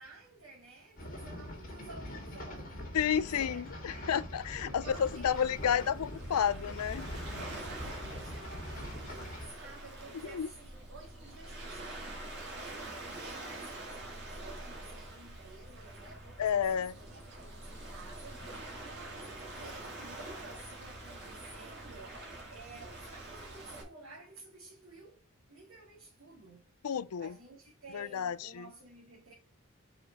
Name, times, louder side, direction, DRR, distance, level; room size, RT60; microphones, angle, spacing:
voice 1, 0.0-4.1 4.6-5.5 7.4-12.1 12.5-22.2 22.5-25.2 25.5-26.7 27.2-29.3, right 3 dB, 65° right, 2.0 m, -53 dB
sound 1, 1.0-9.5, left 1 dB, 40° left, 2.0 m, -43 dB
voice 2, 2.9-7.1 10.2-10.5 16.4-16.9 26.8-27.3 27.9-28.7, left 8 dB, 85° left, 0.4 m, -31 dB
Waves surf, 4.9-23.8, right 2 dB, 50° right, 2.2 m, -46 dB
5.0 x 4.9 x 4.4 m
head